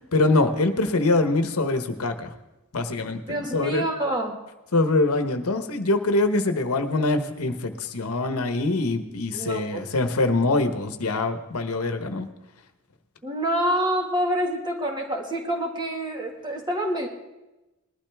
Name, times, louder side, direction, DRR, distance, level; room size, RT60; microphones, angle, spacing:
voice 1, 0.1-2.3 2.7-3.2 3.5-3.8 4.7-12.3, left 2 dB, 75° left, 8 dB, 1.1 m, -24 dB
voice 2, 3.3-4.4 9.3-9.9 13.2-17.1, right 1 dB, 20° right, 1 dB, 1.9 m, -27 dB
20.0 x 12.0 x 3.5 m, 1.0 s
head